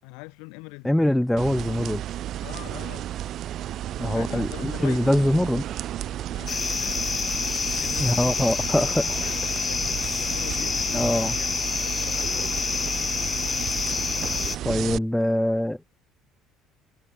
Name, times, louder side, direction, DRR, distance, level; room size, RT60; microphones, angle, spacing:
voice 1, 0.0-1.2 2.4-3.0 4.0-5.2 6.3-7.3 7.8-8.6 9.6-12.5 14.8-15.0, left 32 dB, 80° left, 5.9 m, -42 dB
voice 2, 0.8-2.0 4.0-5.6 8.0-9.2 10.9-11.3 14.6-15.8, left 1 dB, 5° left, 1.1 m, -23 dB
sound 1, 1.4-15.0, right 12 dB, 60° right, 0.9 m, -33 dB
sound 2, 6.5-14.6, left 6 dB, 35° left, 1.7 m, -28 dB
supercardioid pair, 85°, 0 cm